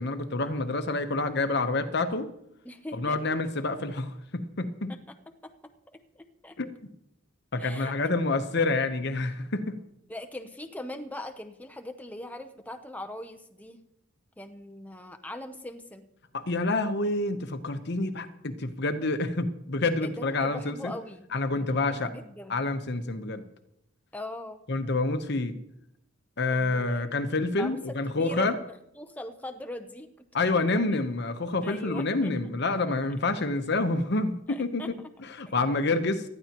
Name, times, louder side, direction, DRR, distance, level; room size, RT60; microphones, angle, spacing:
voice 1, 0.0-2.3 2.9-4.9 6.6-6.7 7.5-9.8 16.3-20.9 21.3-22.1 22.5-23.4 24.7-25.5 26.4-28.5 30.3-35.0 35.4-36.2, left 2 dB, 55° left, 9 dB, 1.0 m, -28 dB
voice 2, 2.6-3.2 4.9-5.2 5.4-5.5 5.9-6.0 6.4-6.5 7.6-7.9 10.1-13.8 14.4-16.0 20.0-21.3 21.5-22.6 24.1-24.6 26.5-27.1 27.5-28.6 29.0-30.9 31.6-32.3 34.5-34.9 35.5-35.6, left 1 dB, 10° left, 6 dB, 0.7 m, -41 dB
18.5 x 13.0 x 3.0 m, 0.79 s
head